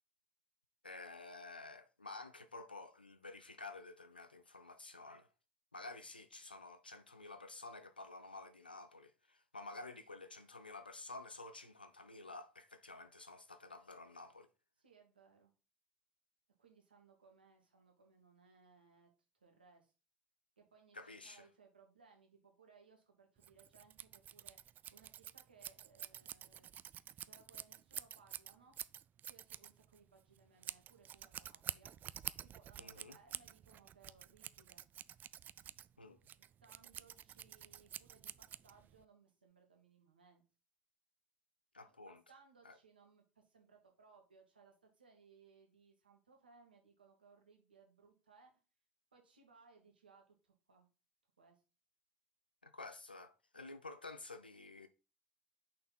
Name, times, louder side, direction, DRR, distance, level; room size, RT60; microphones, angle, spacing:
voice 1, 0.8-5.3 5.7-14.5 20.9-21.4 32.8-33.2 36.0-36.2 41.7-42.2 42.6-42.8 52.6-54.9, left 3 dB, 90° left, 0.4 m, -51 dB
voice 2, 14.8-15.5 16.6-19.9 20.6-24.6 24.9-26.8 27.2-28.8 29.2-31.9 32.4-34.8 36.4-40.4 42.1-48.6 49.1-50.9 51.4-51.6, right 5 dB, 80° right, 1.8 m, -66 dB
Scissors, 23.4-39.0, right 10 dB, 35° right, 0.3 m, -49 dB
6.1 x 4.3 x 4.3 m
figure-of-eight pair, 65°, 5 cm